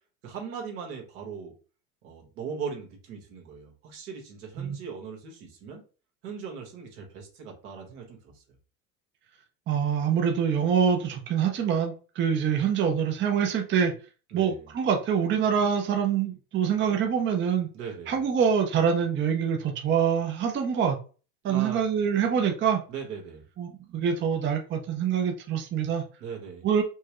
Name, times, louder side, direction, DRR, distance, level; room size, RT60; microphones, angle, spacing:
voice 1, 0.2-1.5 2.0-5.8 6.2-8.4 14.3-14.7 17.7-18.2 21.4-21.8 22.9-23.4 26.2-26.7, right 6 dB, 80° right, 1 dB, 1.6 m, -39 dB
voice 2, 9.7-13.9 14.3-17.7 18.1-21.0 21.4-22.8 23.6-26.0 26.6-26.8, right 7 dB, 25° right, 3 dB, 0.6 m, -25 dB
4.5 x 2.2 x 3.0 m, 0.37 s
supercardioid pair, 105°, 44 cm